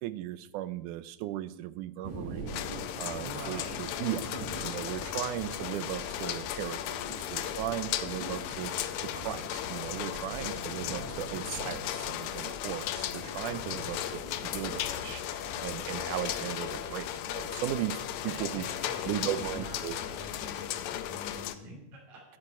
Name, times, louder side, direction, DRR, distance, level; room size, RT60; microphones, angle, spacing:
voice 1, 0.0-7.0 7.3-18.6 19.1-20.0, right 13 dB, 80° right, 14 dB, 1.9 m, -37 dB
sound 1, 2.0-21.0, right 2 dB, 15° right, 4.6 m, -46 dB
sound 2, 2.5-21.6, left 12 dB, 85° left, 1.6 m, -36 dB
voice 2, 3.2-3.8 18.2-22.2, equal, 55° right, -3 dB, 4.5 m, -45 dB
12.5 x 9.8 x 4.3 m, 0.87 s
omnidirectional pair, 4.0 m